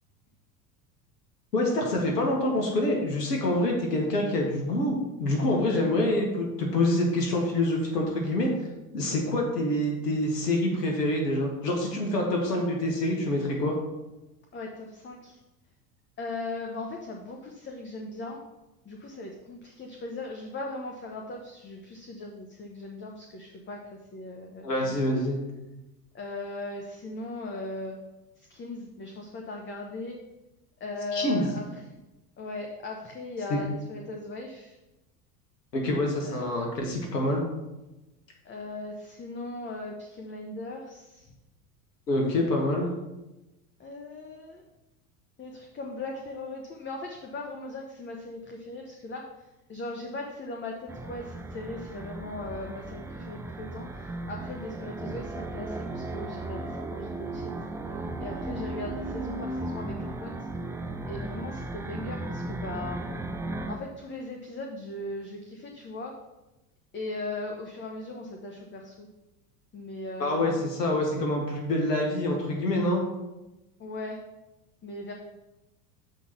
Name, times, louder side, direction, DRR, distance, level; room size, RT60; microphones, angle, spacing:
voice 1, 1.5-8.5 8.9-13.8 24.6-25.4 31.1-31.5 33.5-33.6 35.7-37.4 42.1-42.9 70.2-73.0, left 1 dB, 85° left, 0 dB, 1.6 m, -26 dB
voice 2, 14.5-15.4 16.2-18.4 18.8-25.2 26.1-28.0 28.4-30.2 30.8-31.8 32.4-34.8 36.2-36.5 38.4-41.3 42.8-42.9 43.8-44.6 45.4-49.2 49.7-57.5 58.2-60.3 61.1-63.0 63.7-66.1 66.9-69.1 69.7-70.6 73.8-74.2 74.8-75.1, left 2 dB, 25° left, 1 dB, 1.0 m, -38 dB
sound 1, 50.9-63.8, right 2 dB, 5° right, 0.3 m, -36 dB
7.1 x 4.0 x 5.9 m, 1.0 s
hypercardioid pair, 85°, 47 cm